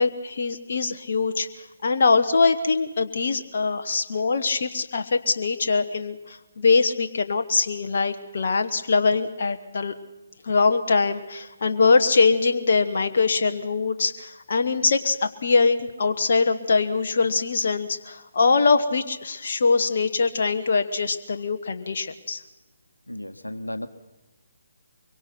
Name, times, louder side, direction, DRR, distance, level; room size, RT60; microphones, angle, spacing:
voice 1, 0.0-1.5 1.8-9.9 10.4-22.4, left 4 dB, 50° left, 7 dB, 1.1 m, -22 dB
voice 2, 23.1-23.9, left 1 dB, 90° left, 9 dB, 1.3 m, -34 dB
24.0 x 23.0 x 5.9 m, 1.1 s
figure-of-eight pair, 145°, 0 cm